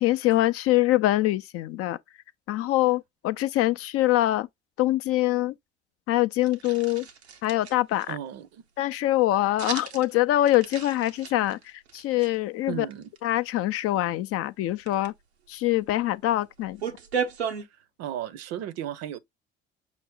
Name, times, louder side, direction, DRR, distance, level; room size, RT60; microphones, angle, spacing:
voice 1, 0.0-2.0 2.5-4.5 4.8-5.5 6.1-7.1 7.4-8.2 8.8-12.9 13.2-15.1 15.5-16.8, left 15 dB, 45° left, 0.4 m, -24 dB
sound 1, 6.4-8.1 9.6-10.1 10.5-12.3 12.9-13.2 14.7-15.1 16.0-16.1 16.3-17.6, right 7 dB, 90° right, 0.7 m, -34 dB
voice 2, 8.1-8.6 12.7-13.1 17.7-19.2, right 11 dB, 55° right, 0.6 m, -35 dB
5.9 x 2.0 x 3.8 m
figure-of-eight pair, 55°, 31 cm